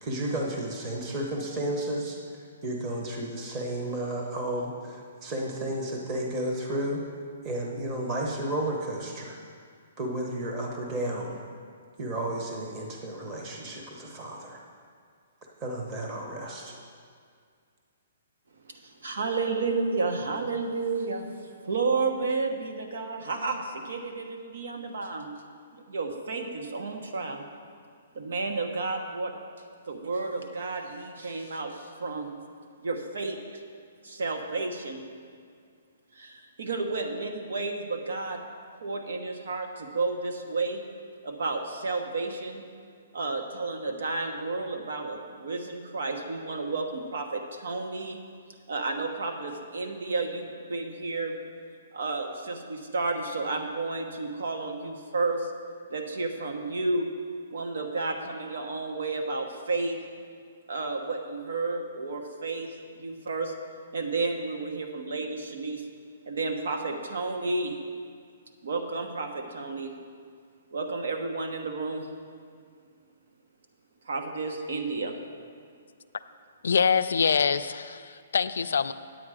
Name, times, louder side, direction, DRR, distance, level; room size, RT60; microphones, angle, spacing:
voice 1, 0.0-2.2 2.6-7.0 7.4-9.4 10.0-11.4 12.0-14.6 15.6-16.8, right 1 dB, 20° right, -1 dB, 0.9 m, -32 dB
voice 2, 18.7-25.3 25.7-27.5 28.1-29.3 29.9-32.3 32.8-33.6 34.0-35.0 36.1-38.4 38.8-40.8 41.2-42.6 43.1-48.2 48.7-51.4 51.9-55.5 55.9-57.1 57.5-60.0 60.7-63.5 63.9-65.8 66.3-67.8 68.6-69.9 70.7-72.1 74.0-75.2, right 3 dB, 75° right, 4 dB, 1.1 m, -31 dB
voice 3, 76.6-78.9, left 6 dB, 80° left, 12 dB, 0.4 m, -25 dB
8.8 x 8.7 x 4.9 m, 2.1 s
hypercardioid pair, 175°, 0 cm